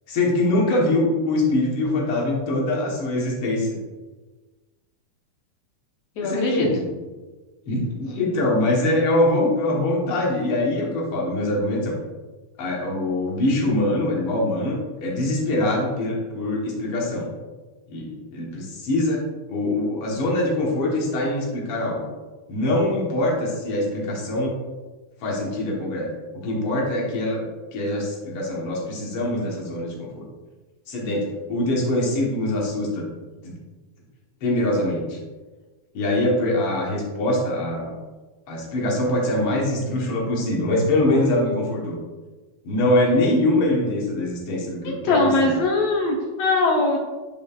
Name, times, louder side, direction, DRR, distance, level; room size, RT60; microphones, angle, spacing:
voice 1, 0.1-3.8 6.2-6.9 7.7-11.9 12.6-17.3 17.9-22.1 22.5-24.5 25.2-26.1 26.3-27.4 27.7-30.2 30.9-33.1 33.4-33.5 34.4-35.2 35.9-37.9 38.5-42.0 42.6-45.5, left 1 dB, 60° left, -2 dB, 1.6 m, -23 dB
voice 2, 6.2-6.7 44.8-47.0, left 2 dB, 90° left, -1 dB, 1.4 m, -21 dB
10.0 x 5.4 x 2.4 m, 1.3 s
omnidirectional pair, 4.4 m